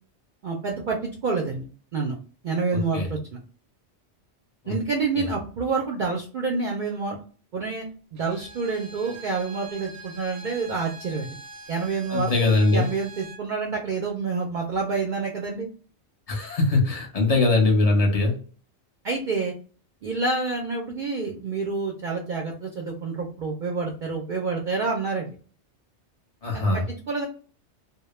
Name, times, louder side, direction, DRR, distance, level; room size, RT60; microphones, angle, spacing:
voice 1, 0.4-1.6 1.9-2.1 2.4-3.2 4.7-7.2 7.5-7.8 8.1-11.4 11.7-12.3 12.7-15.7 19.0-19.5 20.0-25.3 26.5-27.3, right 4 dB, 60° right, 0 dB, 0.5 m, -28 dB
voice 2, 2.7-3.1 4.6-4.7 5.2-5.3 12.1-12.9 16.3-18.4 26.4-26.8, left 2 dB, 40° left, 0 dB, 0.7 m, -21 dB
Bowed string instrument, 8.1-13.5, right 3 dB, 85° right, 0.9 m, -44 dB
2.1 x 2.0 x 3.0 m, 0.40 s
omnidirectional pair, 1.2 m